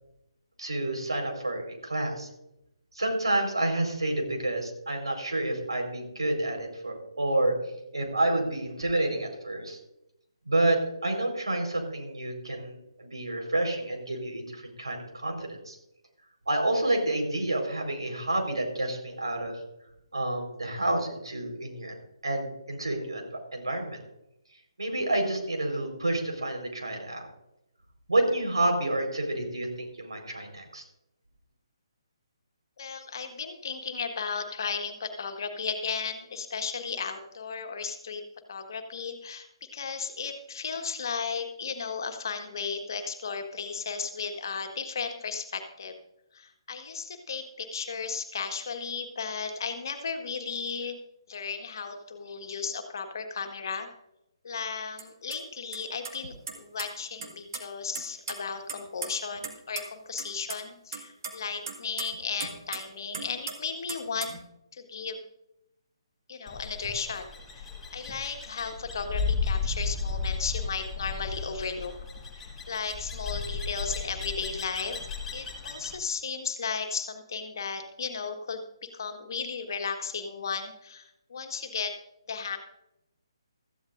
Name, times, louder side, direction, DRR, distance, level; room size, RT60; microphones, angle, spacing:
voice 1, 0.6-2.3 2.9-7.6 7.9-9.8 10.5-15.8 16.5-19.5 20.1-21.9 22.2-23.3 23.5-24.0 24.8-27.3 28.1-30.8, right 1 dB, 70° right, 3 dB, 4.5 m, -29 dB
voice 2, 32.8-38.2 38.5-45.9 46.3-51.0 51.3-53.9 54.4-64.3 64.7-65.2 66.3-67.3 67.5-71.9 72.4-75.0 75.3-81.9 82.3-82.6, left 5 dB, 50° left, 6 dB, 1.6 m, -35 dB
sound 1, 55.0-55.1 55.3-55.4 55.7-55.8 56.0-56.9 57.2-57.6 57.9-59.5 59.8-59.9 60.2-60.6 60.9-62.9 63.1-63.5 63.9-64.4, right 5 dB, 45° right, 1.9 m, -36 dB
sound 2, 66.5-76.0, left 4 dB, 10° left, 2.0 m, -34 dB
16.5 x 14.5 x 2.6 m, 0.85 s
figure-of-eight pair, 140°, 3 cm